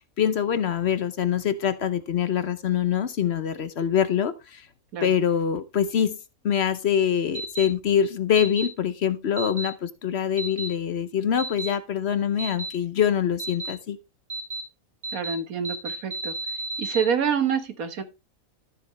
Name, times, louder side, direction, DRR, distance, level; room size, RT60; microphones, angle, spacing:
voice 1, 0.2-4.7 5.0-6.2 6.4-14.0, left 8 dB, 55° left, 0.9 m, -24 dB
sound 1, 7.3-7.7 8.4-8.7 9.4-9.7 10.4-10.7 11.4-11.7 12.4-12.7 13.4-13.7 14.3-14.6 15.0-15.3 15.6-17.0, right 3 dB, 35° right, 3.3 m, -32 dB
voice 2, 15.1-16.3 16.8-18.0, right 7 dB, 85° right, 1.7 m, -27 dB
13.0 x 7.1 x 3.1 m
omnidirectional pair, 1.5 m